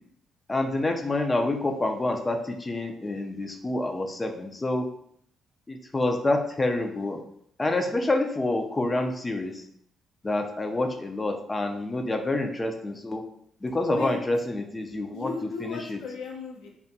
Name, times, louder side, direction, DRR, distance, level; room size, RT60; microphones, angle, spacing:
voice 1, 0.5-4.9 5.7-7.2 7.6-9.6 10.2-13.2 13.6-15.3 15.6-16.0, left 2 dB, 20° left, 4 dB, 0.4 m, -27 dB
voice 2, 13.9-14.2 15.1-16.7, left 4 dB, 85° left, 0 dB, 0.6 m, -35 dB
2.6 x 2.2 x 2.6 m, 0.69 s
cardioid pair, 90°, 0 cm